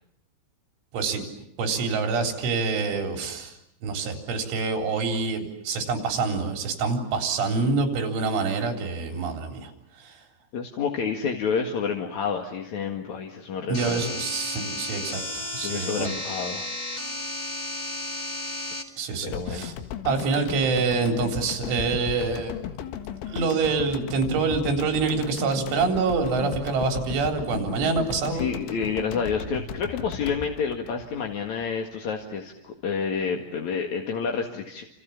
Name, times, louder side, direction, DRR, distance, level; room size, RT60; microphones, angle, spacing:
voice 1, 1.6-3.6 3.8-9.7 10.0-10.2 13.7-16.2 19.0-19.7 20.1-22.5 23.3-28.5, right 4 dB, 90° right, 5 dB, 6.2 m, -26 dB
voice 2, 10.5-14.0 15.6-16.6 19.2-19.7 28.2-34.8, left 6 dB, 50° left, 2 dB, 2.6 m, -29 dB
sound 1, 13.7-18.8, left 1 dB, 15° left, 1.7 m, -33 dB
sound 2, 19.3-31.7 32.0-32.1, left 8 dB, 90° left, 4.1 m, -36 dB
29.5 x 28.0 x 7.2 m, 0.78 s
omnidirectional pair, 5.4 m